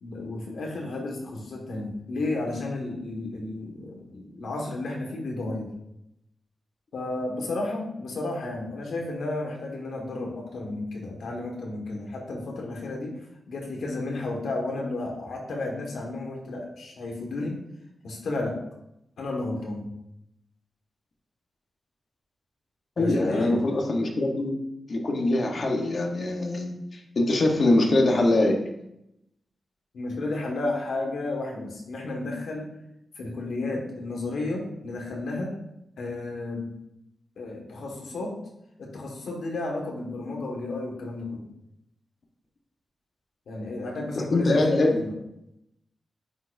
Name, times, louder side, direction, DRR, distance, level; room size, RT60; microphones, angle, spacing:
voice 1, 0.0-5.7 6.9-13.1 13.5-17.5 18.0-18.6 19.2-19.8 23.0-23.7 29.9-32.7 33.2-35.5 36.0-36.7 37.4-38.3 38.8-41.4 43.5-45.1, left 2 dB, 85° left, 0 dB, 1.6 m, -32 dB
voice 2, 23.0-24.6 24.9-28.6 44.3-45.0, left 2 dB, 45° left, 2 dB, 1.1 m, -23 dB
9.5 x 4.3 x 2.6 m, 0.83 s
wide cardioid pair, 140°, 0 cm